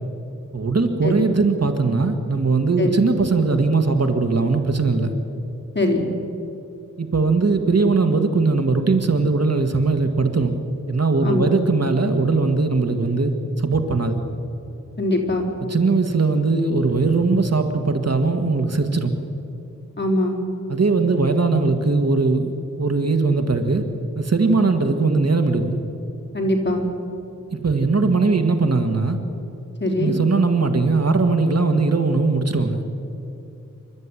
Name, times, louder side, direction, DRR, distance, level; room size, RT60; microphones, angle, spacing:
voice 1, 0.5-5.1 7.0-10.6 10.9-13.3 13.6-14.2 15.7-19.2 20.7-23.8 24.2-25.8 27.5-29.2 30.0-32.8, right 3 dB, 55° right, 6 dB, 1.8 m, -20 dB
voice 2, 5.7-6.1 11.2-11.5 15.0-15.5 20.0-20.4 26.3-26.8 29.8-30.1, left 1 dB, 35° left, 0 dB, 4.1 m, -22 dB
27.5 x 13.0 x 9.9 m, 2.7 s
wide cardioid pair, 70°, 31 cm